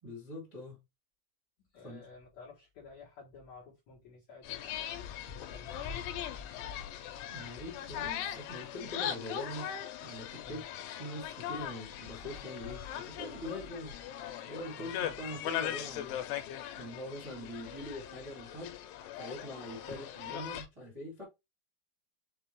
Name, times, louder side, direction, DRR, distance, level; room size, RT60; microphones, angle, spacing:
voice 1, 0.0-0.7 1.8-2.1 7.3-9.7 10.0-10.6 11.0-13.9 14.5-16.2 16.8-18.8 19.2-21.2, left 1 dB, 25° right, 0.6 m, -43 dB
voice 2, 1.6-4.7 5.3-6.3 10.4-10.6 14.7-15.0 19.9-20.0, left 3 dB, 65° left, 1.7 m, -53 dB
sound 1, 4.4-20.7, left 10 dB, 80° left, 2.7 m, -40 dB
6.6 x 2.5 x 3.3 m
omnidirectional pair, 5.0 m